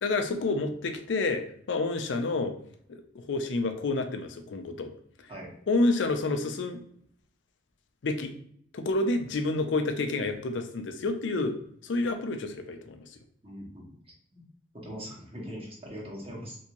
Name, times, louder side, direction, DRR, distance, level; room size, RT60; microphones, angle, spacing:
voice 1, 0.0-2.5 2.9-4.9 5.7-6.8 8.0-8.3 8.7-11.5 11.9-13.0, left 2 dB, 80° left, 7 dB, 0.5 m, -29 dB
voice 2, 13.4-13.9 14.3-14.4 14.8-16.6, equal, 30° right, -4 dB, 1.1 m, -41 dB
3.5 x 2.7 x 2.9 m, 0.66 s
head